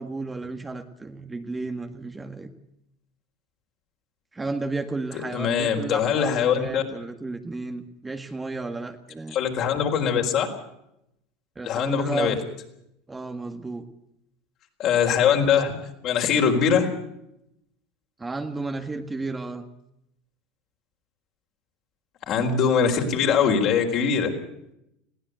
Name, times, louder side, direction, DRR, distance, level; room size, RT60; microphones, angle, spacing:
voice 1, 0.0-2.5 4.3-9.4 11.5-12.3 13.1-13.9 18.2-19.7, right 3 dB, 15° right, 6 dB, 1.8 m, -33 dB
voice 2, 5.1-6.8 9.3-10.5 11.6-12.3 14.8-15.7 16.0-16.9 22.3-24.3, left 7 dB, 50° left, 3 dB, 4.3 m, -22 dB
21.0 x 16.0 x 8.0 m, 0.81 s
hypercardioid pair, 95°, 0 cm